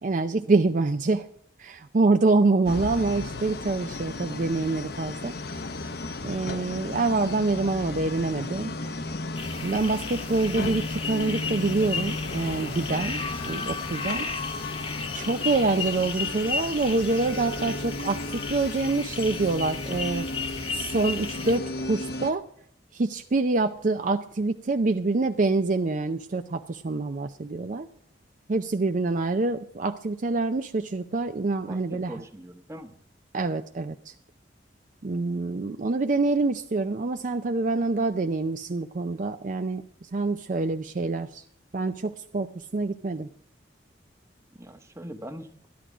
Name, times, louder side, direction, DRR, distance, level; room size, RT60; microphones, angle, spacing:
voice 1, 0.0-1.3 1.6-5.3 6.2-8.7 9.6-14.3 15.1-20.3 20.7-22.4 22.9-27.9 28.5-32.2 33.3-34.1 35.0-41.4 41.7-43.3, right 3 dB, 45° right, 8 dB, 0.5 m, -26 dB
sound 1, 2.6-22.3, left 2 dB, 60° left, 0.8 m, -35 dB
sound 2, 9.3-21.6, left 4 dB, 30° left, 1.1 m, -34 dB
voice 2, 31.7-33.0 44.5-45.7, right 1 dB, 15° right, 7 dB, 1.0 m, -42 dB
12.5 x 11.5 x 4.9 m, 0.62 s
head